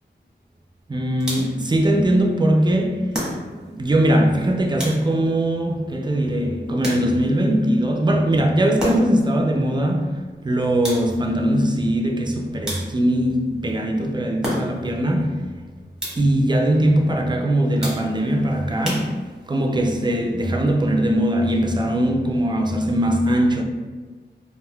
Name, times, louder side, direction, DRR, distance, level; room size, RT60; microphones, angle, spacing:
voice 1, 0.9-3.3 3.7-15.5 16.2-23.6, right 1 dB, 25° right, 0.3 m, -21 dB
sound 1, 1.2-1.7 3.1-3.8 4.8-5.4 6.8-7.4 8.8-9.3 10.8-11.4 12.6-13.2 14.4-15.0 16.0-16.5 17.8-18.3 18.8-19.6, equal, 5° right, 1.0 m, -31 dB
3.3 x 2.5 x 2.2 m
wide cardioid pair, 65°, 19 cm